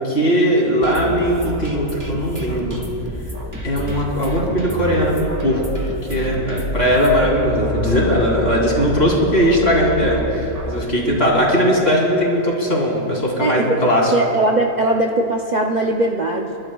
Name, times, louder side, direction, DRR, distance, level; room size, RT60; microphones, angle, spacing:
voice 1, 0.0-2.8 3.6-5.6 6.1-14.1, equal, 40° left, -3 dB, 3.1 m, -18 dB
sound 1, 0.8-10.9, right 1 dB, 10° right, 1.3 m, -29 dB
voice 2, 13.4-13.8 14.1-16.6, right 2 dB, 70° right, 0 dB, 0.4 m, -20 dB
30.0 x 12.5 x 2.3 m, 2.9 s
omnidirectional pair, 1.7 m